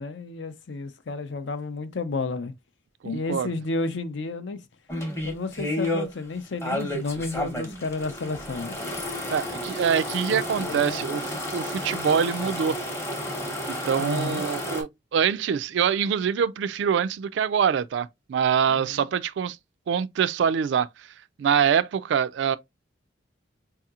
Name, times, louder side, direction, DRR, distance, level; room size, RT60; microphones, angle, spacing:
voice 1, 0.0-2.5 3.0-4.6 5.2-8.8 10.3-11.2 14.0-14.4 18.7-19.0, left 3 dB, 65° left, 0.5 m, -32 dB
voice 2, 3.0-3.5 9.3-12.8 13.7-19.6 19.9-21.1 21.4-22.6, right 7 dB, 65° right, 0.3 m, -25 dB
sound 1, 4.9-6.1 6.6-14.8, left 1 dB, 15° left, 0.8 m, -31 dB
4.6 x 2.8 x 2.3 m
head